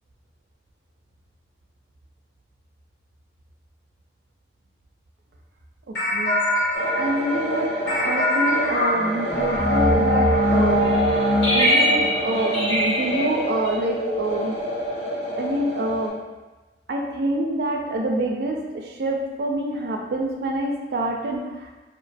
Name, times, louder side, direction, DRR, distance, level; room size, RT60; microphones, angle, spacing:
sound 1, 5.9-14.9, equal, 90° left, 0.8 m, -22 dB
voice 1, 5.9-6.4 7.0-11.0 11.5-14.6 15.4-16.2 16.9-21.7, right 1 dB, 60° right, 0 dB, 0.3 m, -26 dB
sound 2, 6.7-16.1, equal, 35° left, 0.7 m, -29 dB
2.6 x 2.2 x 2.5 m, 1.2 s
head